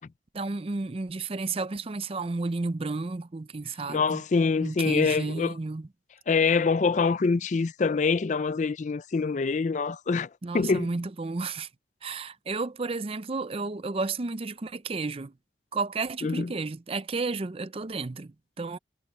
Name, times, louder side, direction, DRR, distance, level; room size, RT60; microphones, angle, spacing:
voice 1, 0.3-4.2 4.6-5.9 10.4-11.7 12.0-15.3 15.7-18.8, right 3 dB, 30° right, 0.5 m, -32 dB
voice 2, 3.9-5.5 6.3-10.3 10.5-10.9 16.2-16.5, left 4 dB, 40° left, 0.4 m, -25 dB
head